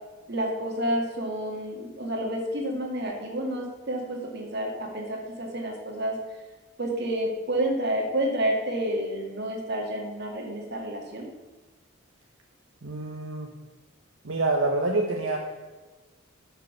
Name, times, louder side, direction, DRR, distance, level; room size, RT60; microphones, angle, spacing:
voice 1, 0.3-6.1 6.8-11.3, right 1 dB, 55° right, 1 dB, 2.2 m, -29 dB
voice 2, 12.8-13.5 14.2-15.4, right 2 dB, 75° right, 0 dB, 1.1 m, -26 dB
10.5 x 5.9 x 7.0 m, 1.3 s
head